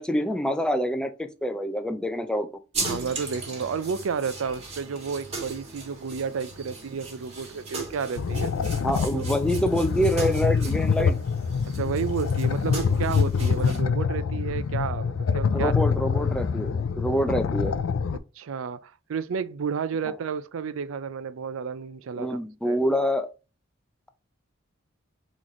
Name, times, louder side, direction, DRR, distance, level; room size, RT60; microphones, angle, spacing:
voice 1, 0.0-2.5 8.8-11.2 15.5-17.7 22.2-23.3, equal, 5° left, 0.4 m, -26 dB
sound 1, 2.7-13.8, right 3 dB, 30° right, 1.5 m, -38 dB
voice 2, 2.8-8.6 9.1-9.2 11.7-15.7 18.4-22.4 22.7-22.8, right 6 dB, 85° right, 0.4 m, -31 dB
sound 2, 8.2-18.2, left 5 dB, 90° left, 0.4 m, -25 dB
4.1 x 3.1 x 3.7 m
head